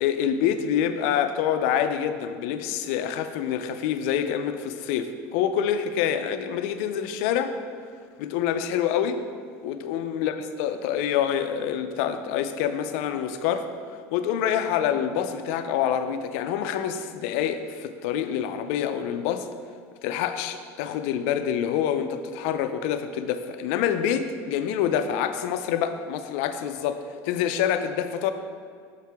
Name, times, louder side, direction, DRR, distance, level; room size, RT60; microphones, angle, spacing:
voice 1, 0.0-7.5 8.2-9.2 9.6-13.6 14.1-19.5 20.0-28.3, left 9 dB, 75° left, 9 dB, 0.4 m, -26 dB
6.7 x 4.7 x 3.4 m, 2.1 s
supercardioid pair, 130°, 7 cm